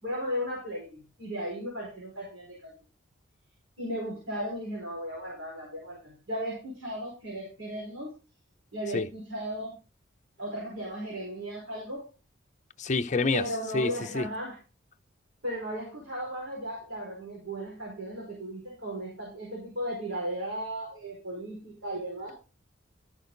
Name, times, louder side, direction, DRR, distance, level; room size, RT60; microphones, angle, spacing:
voice 1, 0.0-2.7 3.8-8.2 8.7-9.8 10.4-12.0 13.3-14.6 15.4-22.3, equal, 80° right, 4.9 m, -36 dB
voice 2, 12.8-13.5 13.7-14.3, left 3 dB, 40° left, 0.6 m, -27 dB
13.0 x 6.3 x 3.9 m
head